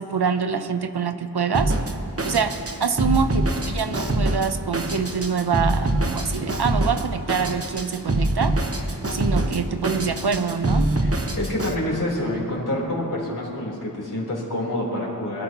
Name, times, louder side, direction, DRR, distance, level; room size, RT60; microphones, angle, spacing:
voice 1, 0.0-1.7 2.2-8.5 9.1-10.9, right 5 dB, 65° right, 9 dB, 0.8 m, -25 dB
Drum kit, 1.5-11.8, right 1 dB, 35° right, 1.0 m, -25 dB
voice 2, 11.4-15.4, left 1 dB, 50° left, -5 dB, 3.7 m, -27 dB
23.0 x 12.5 x 3.0 m, 2.7 s
wide cardioid pair, 45°, 41 cm